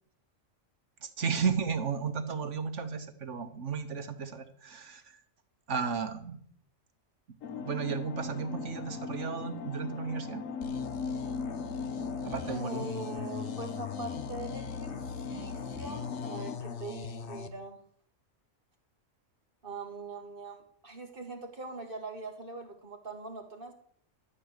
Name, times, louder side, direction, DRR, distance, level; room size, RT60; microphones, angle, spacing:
voice 1, 1.0-5.2 5.7-6.4 7.6-10.4 12.2-12.9, right 6 dB, 70° right, 9 dB, 1.4 m, -34 dB
sound 1, 7.4-16.6, left 5 dB, 85° left, 1.3 m, -39 dB
sound 2, 10.6-17.5, left 6 dB, 65° left, 1.1 m, -41 dB
voice 2, 12.4-14.9 15.3-17.8 19.6-23.7, right 3 dB, 45° right, 3 dB, 2.0 m, -42 dB
13.0 x 7.7 x 6.6 m, 0.62 s
omnidirectional pair, 1.3 m